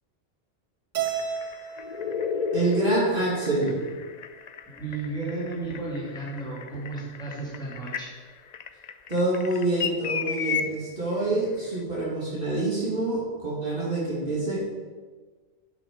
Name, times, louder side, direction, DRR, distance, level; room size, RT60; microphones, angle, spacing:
Keyboard (musical), 0.9-3.3, right 8 dB, 90° right, 1.3 m, -34 dB
sound 1, 1.0-10.6 11.8-11.9, left 7 dB, 55° left, 0.4 m, -33 dB
voice 1, 2.5-3.8 9.1-14.6, right 2 dB, 45° right, -6 dB, 2.4 m, -26 dB
voice 2, 4.7-8.1, right 3 dB, 5° left, -6 dB, 2.9 m, -33 dB
9.7 x 6.1 x 5.2 m, 1.4 s
omnidirectional pair, 1.2 m